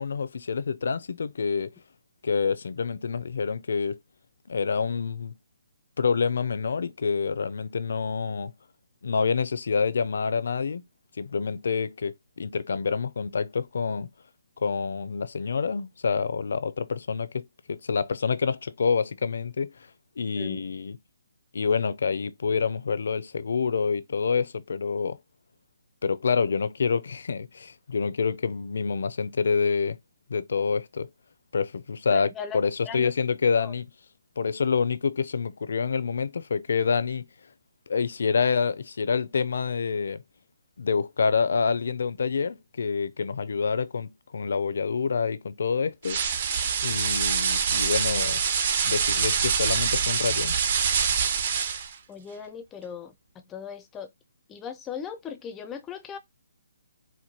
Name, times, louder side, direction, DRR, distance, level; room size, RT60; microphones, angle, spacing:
voice 1, 0.0-1.7 2.2-4.0 4.5-5.3 6.0-8.5 9.0-10.8 11.2-14.1 14.6-19.9 20.2-21.0 21.5-25.2 26.0-30.0 30.3-31.1 31.5-33.9 34.4-37.3 37.9-40.2 40.8-46.2 46.8-48.4 48.8-50.6, left 5 dB, 70° left, 0.4 m, -27 dB
voice 2, 32.1-32.6 32.9-33.1 33.5-33.7 52.1-53.1 53.5-54.1 54.5-56.2, left 7 dB, 15° left, 0.4 m, -38 dB
sound 1, 46.0-51.9, right 6 dB, 40° right, 0.6 m, -25 dB
4.4 x 2.2 x 2.7 m
hypercardioid pair, 160°, 0 cm